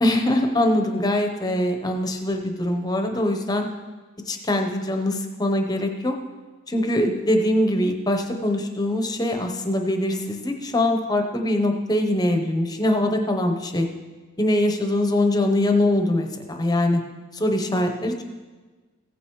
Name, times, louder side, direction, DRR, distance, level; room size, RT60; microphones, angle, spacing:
voice 1, 0.0-3.7 4.3-6.1 6.7-13.9 14.4-17.0 17.3-18.1, left 1 dB, 20° left, 4 dB, 0.9 m, -22 dB
16.0 x 9.1 x 3.1 m, 1.3 s
head